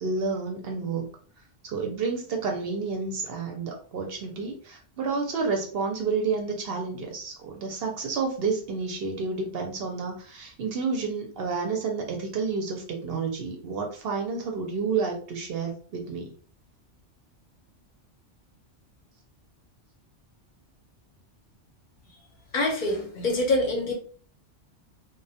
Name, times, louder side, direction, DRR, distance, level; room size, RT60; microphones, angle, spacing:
voice 1, 0.0-1.1 1.6-16.3, right 4 dB, 65° right, 1 dB, 0.7 m, -30 dB
voice 2, 22.5-23.9, left 2 dB, 50° left, 0 dB, 0.7 m, -25 dB
2.1 x 2.1 x 2.6 m, 0.44 s
omnidirectional pair, 1.2 m